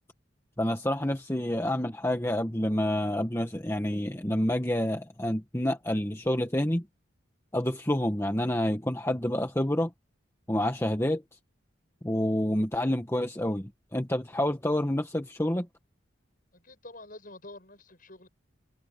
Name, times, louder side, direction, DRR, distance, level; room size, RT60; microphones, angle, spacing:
voice 1, 0.6-6.9 7.5-9.9 10.5-11.2 12.0-15.7, left 1 dB, 15° left, 1.5 m, -28 dB
voice 2, 16.5-18.3, left 2 dB, 45° left, 7.9 m, -47 dB
head